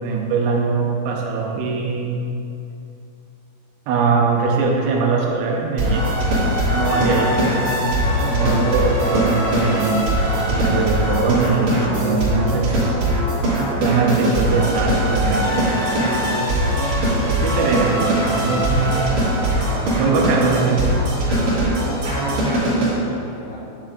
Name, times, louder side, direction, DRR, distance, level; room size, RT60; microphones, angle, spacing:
voice 1, 0.0-2.2 3.9-6.1 6.5-7.5 8.3-10.2 10.5-13.0 13.8-15.7 16.2-16.7 17.4-19.1 20.0-20.9, right 4 dB, 80° right, -1 dB, 3.2 m, -21 dB
sound 1, 5.8-22.9, right 1 dB, 50° right, 2.3 m, -20 dB
voice 2, 8.1-9.0 22.4-23.6, left 2 dB, 75° left, -5 dB, 3.5 m, -35 dB
10.0 x 7.3 x 2.5 m, 2.6 s
omnidirectional pair, 5.7 m